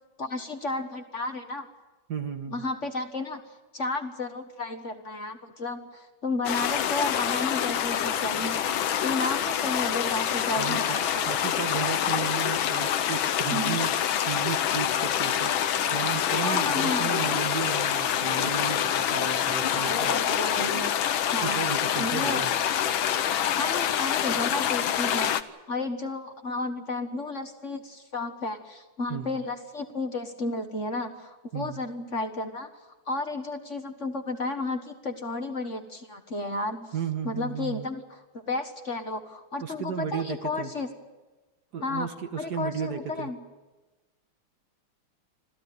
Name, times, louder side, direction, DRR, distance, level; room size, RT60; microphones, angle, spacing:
voice 1, 0.2-1.7 2.5-11.3 13.5-13.8 16.4-17.1 19.7-20.9 21.3-21.6 22.0-22.5 23.5-25.4 25.7-32.7 33.1-36.9 37.2-40.9 41.8-42.1 42.4-43.4, left 2 dB, 35° left, 6 dB, 1.7 m, -32 dB
voice 2, 2.1-2.6 10.6-14.0 14.2-20.1 21.4-22.5 29.1-29.4 31.5-31.8 36.9-37.9 39.6-40.7 41.7-43.3, right 7 dB, 55° right, 7 dB, 1.7 m, -34 dB
sound 1, 6.4-25.4, left 10 dB, 70° left, 1.7 m, -26 dB
26.5 x 15.5 x 9.3 m, 1.2 s
omnidirectional pair, 2.3 m